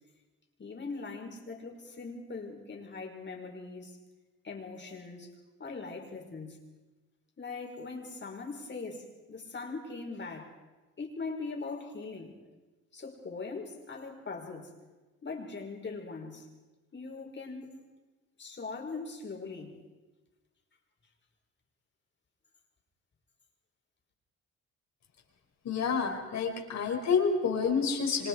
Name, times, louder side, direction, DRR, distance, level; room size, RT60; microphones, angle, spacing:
voice 1, 0.6-4.0 4.4-5.3 5.6-6.6 7.4-10.5 11.0-12.4 12.9-14.7 15.2-16.5 16.9-17.7 18.4-19.8, left 4 dB, 35° left, 1 dB, 5.6 m, -41 dB
voice 2, 25.6-28.3, left 5 dB, 65° left, 2 dB, 5.5 m, -28 dB
28.5 x 25.5 x 4.9 m, 1.2 s
cardioid pair, 90°, 30 cm